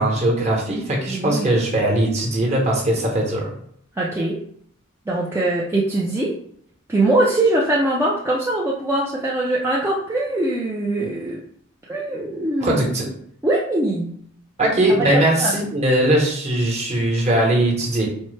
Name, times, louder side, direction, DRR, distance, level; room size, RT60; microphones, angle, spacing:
voice 1, 0.0-3.5 12.6-13.1 14.6-18.1, right 1 dB, 30° right, -2 dB, 0.9 m, -20 dB
voice 2, 1.0-1.5 4.0-4.4 5.1-6.3 6.9-11.4 11.9-13.0 13.4-14.1 14.9-15.5, right 2 dB, 10° right, -5 dB, 0.4 m, -22 dB
4.4 x 2.1 x 3.1 m, 0.66 s
head